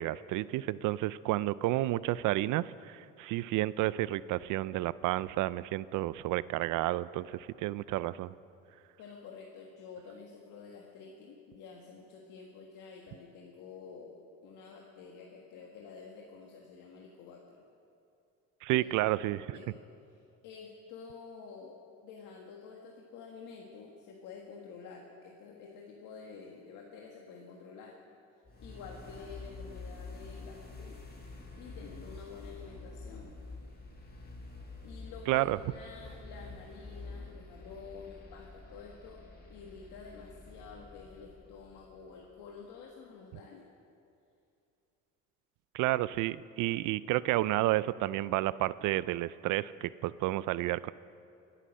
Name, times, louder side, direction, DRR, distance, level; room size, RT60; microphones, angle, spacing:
voice 1, 0.0-8.3 18.6-19.6 35.3-35.6 45.7-50.9, right 16 dB, 75° right, 18 dB, 0.5 m, -31 dB
voice 2, 9.0-17.6 18.7-18.9 19.2-19.8 20.4-21.8 22.0-28.0 28.6-31.0 31.6-33.3 34.8-39.2 39.5-43.7, left 5 dB, 80° left, 0 dB, 1.7 m, -49 dB
sound 1, 28.4-42.3, left 3 dB, 30° left, 4.4 m, -48 dB
23.0 x 9.9 x 6.4 m, 2.6 s
cardioid pair, 90°, 31 cm